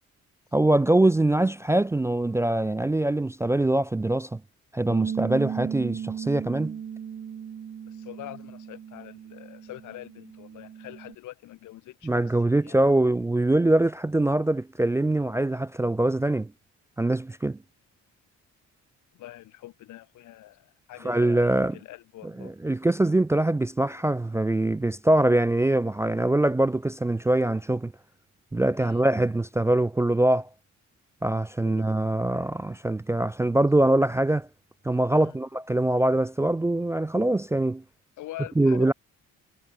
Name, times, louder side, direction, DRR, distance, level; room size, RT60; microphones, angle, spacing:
voice 1, 0.5-4.4 4.7-6.8 12.0-16.5 17.0-17.6 21.0-21.8 22.2-27.9 28.5-30.5 31.2-34.5 34.8-37.8 38.6-38.9, right 1 dB, 10° right, 0.3 m, -23 dB
Bass guitar, 4.9-11.2, right 8 dB, 35° right, 0.7 m, -36 dB
voice 2, 7.8-12.8 19.1-21.3 21.7-22.5 28.8-29.0 31.6-31.9 35.1-35.4 38.2-38.9, left 15 dB, 80° left, 0.9 m, -44 dB
cardioid pair, 90°, 30 cm